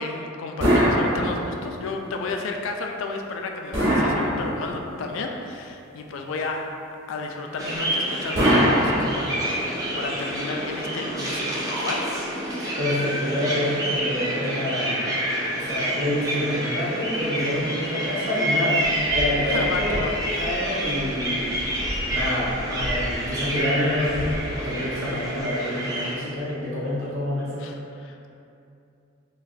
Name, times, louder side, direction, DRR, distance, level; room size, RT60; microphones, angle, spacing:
voice 1, 0.0-6.7 7.1-12.1 19.5-20.2 20.5-20.9 26.1-26.4 27.6-28.3, left 3 dB, 75° left, 3 dB, 0.3 m, -33 dB
sound 1, 0.6-1.8 3.7-5.0 8.4-9.6, equal, 60° right, 1.3 m, -21 dB
sound 2, 7.6-26.1, equal, 15° right, 0.4 m, -28 dB
voice 2, 12.8-15.1 15.5-20.1 20.4-21.4 22.1-27.6, left 1 dB, 80° right, -8 dB, 1.0 m, -27 dB
3.9 x 2.3 x 2.6 m, 2.7 s
head